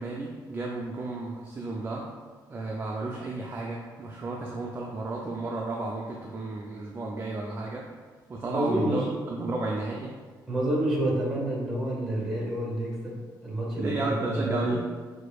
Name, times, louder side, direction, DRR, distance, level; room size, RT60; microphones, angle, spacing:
voice 1, 0.0-2.1 2.5-7.9 8.3-9.0 9.3-10.1 13.8-14.8, right 2 dB, 30° right, -2 dB, 0.4 m, -32 dB
voice 2, 8.4-9.1 10.5-14.8, right 1 dB, 5° right, -4 dB, 1.5 m, -29 dB
6.1 x 2.6 x 2.3 m, 1.5 s
cardioid pair, 130°, 8 cm